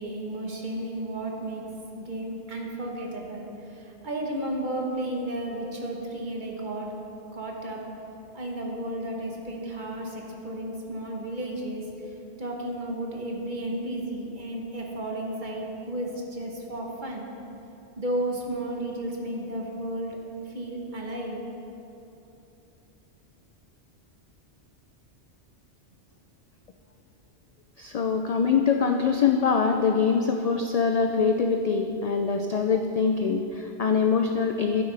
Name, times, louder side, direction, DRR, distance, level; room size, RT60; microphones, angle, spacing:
voice 1, 0.0-1.6 2.0-6.9 7.3-7.8 8.3-11.9 12.4-17.3 18.0-20.2 20.4-21.4, right 1 dB, 45° right, 0 dB, 1.3 m, -33 dB
voice 2, 27.8-34.8, left 5 dB, 65° left, 4 dB, 0.4 m, -24 dB
12.0 x 9.2 x 3.4 m, 2.9 s
omnidirectional pair, 1.2 m